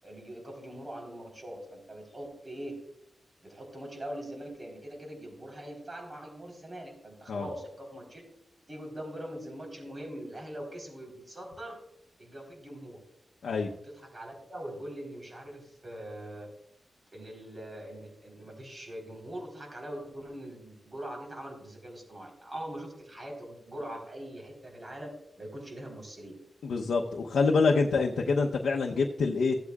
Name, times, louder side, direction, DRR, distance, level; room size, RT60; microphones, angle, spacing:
voice 1, 0.0-2.8 3.4-8.2 8.7-11.8 12.2-13.0 13.8-16.5 17.1-25.1 25.4-26.4 27.5-27.8, right 1 dB, 35° right, 1 dB, 3.9 m, -42 dB
voice 2, 26.6-29.6, left 4 dB, 90° left, -1 dB, 0.8 m, -26 dB
16.0 x 8.3 x 2.4 m, 0.77 s
cardioid pair, 70°, 0 cm